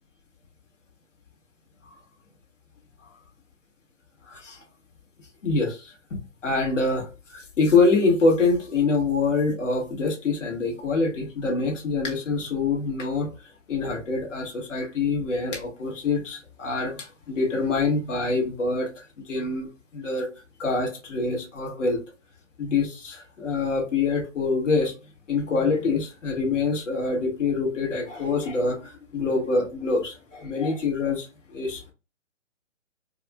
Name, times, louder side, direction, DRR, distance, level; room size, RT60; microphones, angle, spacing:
voice 1, 4.3-4.6 5.4-13.3 13.7-18.9 19.2-20.3 20.6-22.0 22.6-24.9 25.3-31.9, left 3 dB, 75° left, 1.9 m, -25 dB
4.7 x 2.5 x 2.3 m
hypercardioid pair, 150°, 38 cm